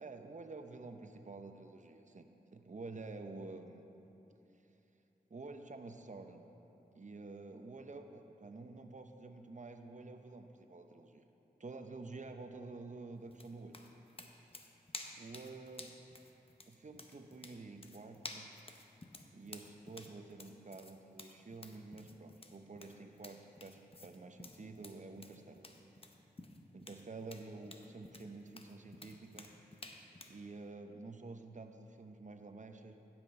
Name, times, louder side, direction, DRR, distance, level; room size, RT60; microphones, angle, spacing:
voice 1, 0.0-2.2 2.5-3.8 5.3-6.4 6.9-11.2 11.6-13.8 14.5-14.6 15.2-16.0 16.7-18.5 19.3-25.6 26.7-29.5 30.3-32.9, right 3 dB, 45° right, 6 dB, 0.9 m, -49 dB
sound 1, 13.3-30.4, left 2 dB, 35° left, 0.9 m, -52 dB
16.0 x 6.0 x 4.4 m, 2.9 s
cardioid pair, 40°, 17 cm